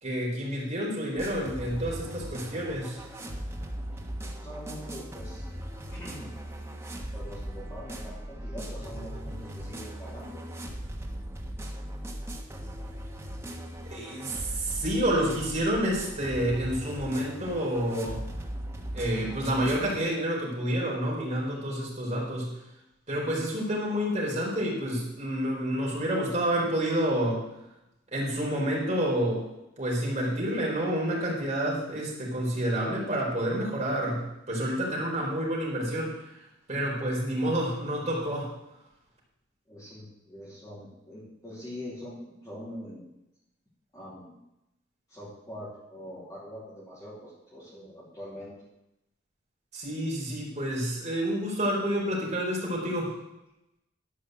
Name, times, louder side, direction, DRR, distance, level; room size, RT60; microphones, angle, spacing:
voice 1, 0.0-3.0 13.9-18.2 18.9-22.6 23.1-27.4 28.1-29.4 29.8-38.5 49.7-53.1, equal, 35° right, -4 dB, 4.4 m, -29 dB
sound 1, 1.2-20.0, right 1 dB, 15° right, 1.3 m, -39 dB
voice 2, 4.4-5.4 5.9-6.3 7.1-10.4 39.7-43.0 43.9-44.4 45.1-48.5, equal, 20° left, -10 dB, 3.1 m, -43 dB
12.5 x 5.5 x 7.7 m, 0.89 s
head